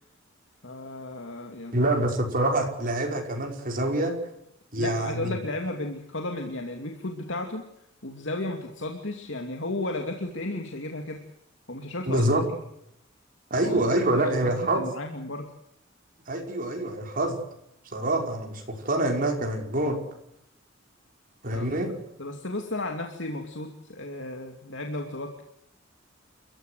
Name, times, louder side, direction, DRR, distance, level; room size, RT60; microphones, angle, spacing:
voice 1, 0.6-1.9 4.8-7.7 8.0-11.2 11.7-12.3 13.6-13.8 14.0-15.5 21.5-21.8 22.2-25.4, left 2 dB, 65° left, 3 dB, 2.7 m, -34 dB
voice 2, 1.7-4.1 4.7-5.3 12.1-12.4 13.5-14.9 16.3-17.4 17.9-20.0 21.4-21.9, right 1 dB, 45° right, 2 dB, 5.5 m, -26 dB
29.0 x 15.0 x 8.1 m, 0.77 s
head